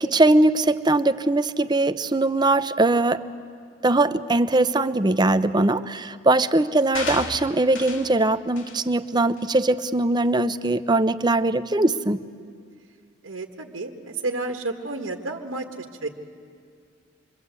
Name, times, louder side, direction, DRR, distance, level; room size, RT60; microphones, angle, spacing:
voice 1, 0.0-3.2 3.8-12.2, right 2 dB, 20° right, 12 dB, 0.6 m, -21 dB
sound 1, 6.9-8.2 8.6-8.8 9.4-9.5, left 4 dB, 70° left, 2.3 m, -33 dB
voice 2, 13.2-16.1, right 2 dB, 90° right, 2 dB, 1.6 m, -31 dB
27.0 x 23.5 x 8.2 m, 2.3 s
head